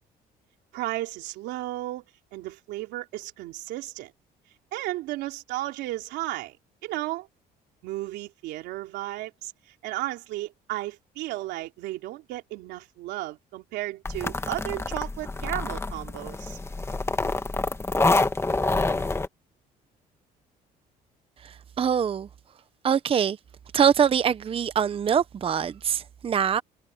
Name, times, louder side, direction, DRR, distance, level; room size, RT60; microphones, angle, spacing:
voice 1, 0.7-2.0 2.3-4.1 4.7-6.6 6.8-7.3 7.8-9.5 9.8-16.6, right 17 dB, 90° right, 3.3 m, -34 dB
sound 1, 14.1-19.3, left 3 dB, 15° left, 1.5 m, -27 dB
voice 2, 21.4-22.3 22.8-23.4 23.7-26.6, right 8 dB, 35° right, 0.7 m, -24 dB
cardioid pair, 110°, 17 cm